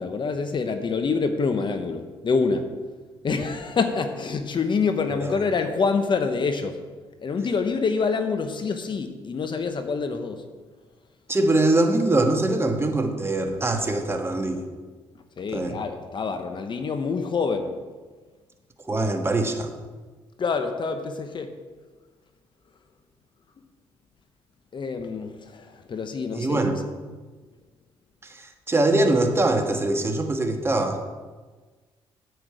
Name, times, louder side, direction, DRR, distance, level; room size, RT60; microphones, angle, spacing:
voice 1, 0.0-2.7 3.2-6.8 7.2-10.4 15.4-17.8 20.4-21.6 24.7-26.8, left 4 dB, 45° left, 7 dB, 1.0 m, -26 dB
voice 2, 11.3-14.6 15.5-15.8 18.9-19.7 26.4-26.8 28.2-31.0, right 2 dB, 20° right, 4 dB, 1.4 m, -23 dB
9.2 x 8.5 x 4.9 m, 1.4 s
supercardioid pair, 70°, 11 cm